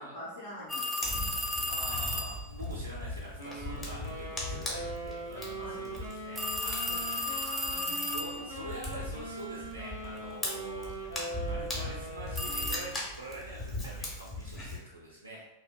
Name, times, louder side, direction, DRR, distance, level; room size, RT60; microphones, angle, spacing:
voice 1, 0.0-1.4 5.6-5.9 6.8-7.0 7.6-8.2, left 1 dB, 65° left, -9 dB, 0.6 m, -46 dB
sound 1, 0.7-2.4 6.4-8.6 12.4-12.8, left 1 dB, 10° right, 0.3 m, -34 dB
Fire, 1.0-14.8, left 1 dB, 20° left, 0.7 m, -40 dB
voice 2, 1.7-7.5 8.0-11.0 11.4-15.5, right 1 dB, 85° right, -3 dB, 0.3 m, -45 dB
Wind instrument woodwind instrument, 3.4-13.0, right 2 dB, 80° left, 1.1 m, -41 dB
2.6 x 2.1 x 2.3 m, 0.95 s
figure-of-eight pair, 90°, 0 cm